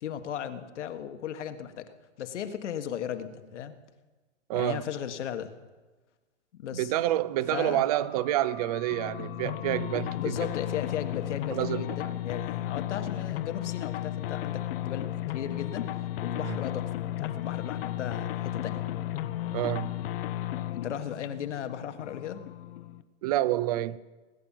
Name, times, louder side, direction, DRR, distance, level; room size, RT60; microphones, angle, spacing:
voice 1, 0.0-3.7 4.5-5.5 6.5-6.9 7.5-7.8 10.1-15.9 16.2-16.9 17.2-18.8 20.7-22.4, left 9 dB, 70° left, 1.4 m, -36 dB
voice 2, 4.5-4.8 6.7-10.3 11.5-12.1 16.4-16.6 19.5-19.9 23.2-24.0, right 14 dB, 35° right, 0.4 m, -28 dB
sound 1, 7.9-12.4, left 11 dB, 15° left, 0.6 m, -50 dB
sound 2, 8.9-23.0, left 13 dB, 50° left, 0.7 m, -34 dB
19.0 x 8.7 x 7.4 m
hypercardioid pair, 145°, 36 cm